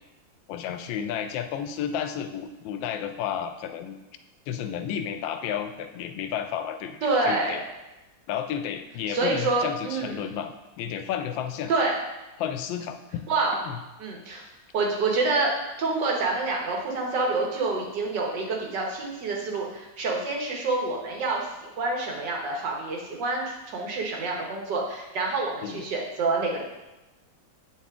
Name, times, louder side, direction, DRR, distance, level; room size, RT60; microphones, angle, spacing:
voice 1, 0.5-4.0 4.5-7.6 8.3-11.7 12.4-13.2 13.6-13.8 25.6-25.9, left 9 dB, 80° left, 8 dB, 1.3 m, -32 dB
voice 2, 7.0-7.6 9.1-10.2 11.7-12.0 13.3-13.6 14.0-14.4 14.7-15.5 15.8-26.6, right 3 dB, 65° right, -1 dB, 1.8 m, -27 dB
8.3 x 4.2 x 3.6 m, 1.0 s
omnidirectional pair, 2.1 m